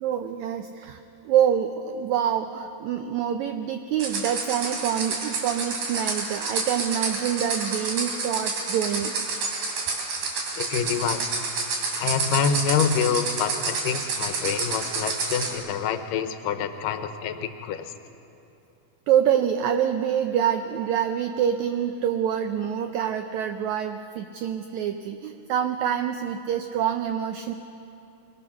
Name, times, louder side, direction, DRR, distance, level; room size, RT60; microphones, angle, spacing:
voice 1, 0.0-1.0 1.2-9.1 19.1-27.5, right 9 dB, 85° right, 8 dB, 1.6 m, -26 dB
sound 1, 4.0-15.6, right 4 dB, 70° right, 4.1 m, -29 dB
voice 2, 10.6-11.3 12.0-17.9, left 7 dB, 80° left, 9 dB, 2.5 m, -26 dB
23.0 x 19.5 x 5.9 m, 2.7 s
omnidirectional pair, 4.0 m